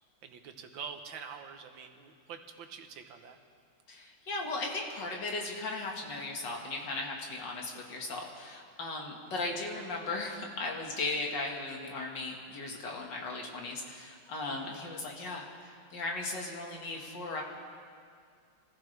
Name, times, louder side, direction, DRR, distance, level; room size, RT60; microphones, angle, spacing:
voice 1, 0.2-3.4 9.4-9.6 14.6-14.8, right 6 dB, 90° right, 6 dB, 1.8 m, -46 dB
voice 2, 3.9-17.4, left 2 dB, 70° left, 0 dB, 2.5 m, -37 dB
25.0 x 15.0 x 3.4 m, 2.3 s
omnidirectional pair, 2.0 m